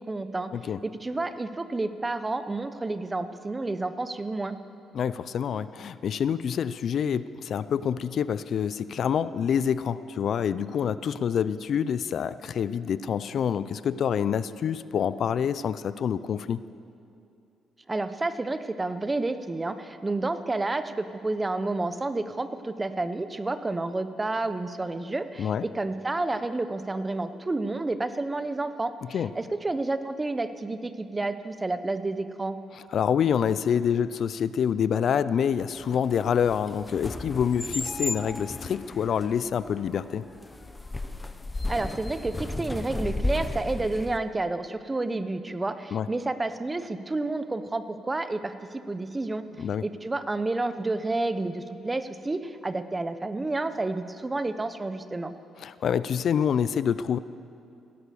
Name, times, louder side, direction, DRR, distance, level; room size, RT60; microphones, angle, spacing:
voice 1, 0.1-0.5 0.8-4.6 17.9-32.6 41.7-49.4 49.8-55.3, right 2 dB, 20° right, 11 dB, 0.8 m, -30 dB
voice 2, 4.9-16.6 25.4-25.7 29.1-29.3 32.9-40.2 45.9-46.1 49.6-49.8 55.6-57.2, left 8 dB, 60° left, 15 dB, 0.4 m, -27 dB
sound 1, 35.6-44.2, left 2 dB, 20° left, 0.8 m, -34 dB
16.5 x 11.0 x 6.9 m, 2.6 s
cardioid pair, 90°, 0 cm